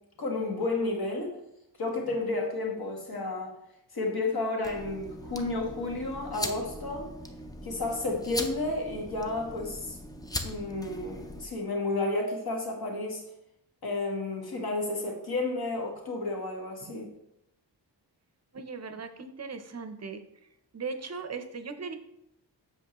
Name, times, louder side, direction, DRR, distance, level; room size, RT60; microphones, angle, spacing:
voice 1, 0.2-1.4 1.8-3.5 3.9-7.1 7.6-10.0 10.4-13.2 13.8-17.0, left 2 dB, 55° left, 0 dB, 1.6 m, -31 dB
sound 1, 4.6-11.5, left 1 dB, 10° left, 0.4 m, -39 dB
voice 2, 18.5-20.2 20.7-21.9, right 4 dB, 35° right, 8 dB, 0.6 m, -38 dB
7.6 x 6.3 x 2.9 m, 0.82 s
wide cardioid pair, 150°, 43 cm